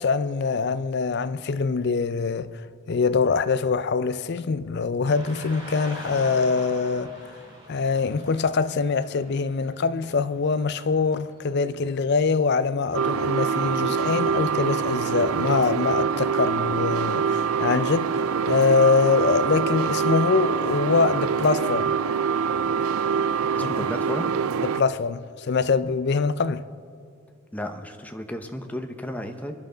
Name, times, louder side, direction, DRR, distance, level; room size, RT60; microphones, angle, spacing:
voice 1, 0.0-2.5 2.9-7.1 7.7-21.9 23.6-23.7 24.6-26.7, left 4 dB, 50° left, 0.4 m, -24 dB
Car passing by / Traffic noise roadway noise, 5.0-14.1, equal, 20° right, 4.8 m, -45 dB
sound 1, 12.9-24.8, right 6 dB, 75° right, 0.4 m, -25 dB
voice 2, 23.5-24.3 27.5-29.5, equal, 5° left, 0.8 m, -33 dB
25.0 x 11.0 x 3.9 m
head